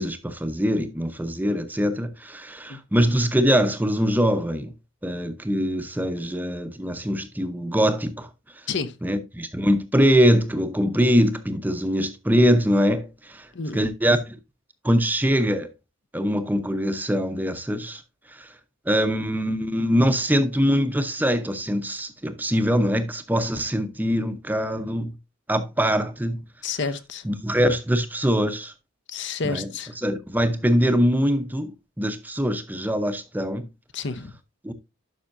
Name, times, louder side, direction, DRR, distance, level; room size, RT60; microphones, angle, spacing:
voice 1, 0.0-4.7 5.0-8.3 9.0-14.4 14.8-15.7 16.1-18.0 18.3-18.5 18.9-25.2 25.5-26.4 27.2-28.7 29.4-29.7 30.0-33.7 34.6-34.7, equal, 10° right, 0.6 m, -23 dB
voice 2, 26.6-27.3 29.1-29.9 33.9-34.3, left 4 dB, 55° left, 0.7 m, -30 dB
11.5 x 5.7 x 2.6 m
head